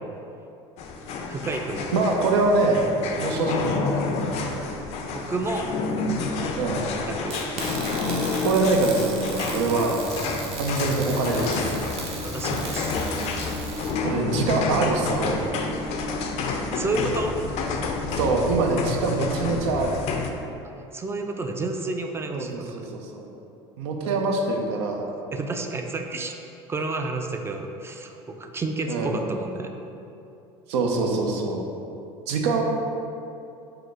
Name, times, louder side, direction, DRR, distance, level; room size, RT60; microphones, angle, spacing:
sound 1, 0.8-20.3, left 3 dB, 50° left, 0.4 m, -29 dB
voice 1, 1.3-1.9 5.1-5.7 7.1-7.4 12.2-13.0 16.5-17.4 20.9-22.9 25.3-26.3 26.7-29.7, right 3 dB, 20° right, 4 dB, 0.3 m, -30 dB
voice 2, 1.9-2.9 3.2-4.1 6.6-6.9 8.4-10.0 10.6-11.8 14.0-15.3 18.2-20.0 22.3-22.5 22.7-23.3 23.8-25.0 28.9-29.2 30.7-31.6 32.3-32.6, right 3 dB, 85° right, 2 dB, 0.6 m, -24 dB
sound 2, 7.3-13.9, right 4 dB, 45° right, 0.7 m, -37 dB
4.8 x 2.0 x 4.5 m, 2.8 s
supercardioid pair, 100°, 14 cm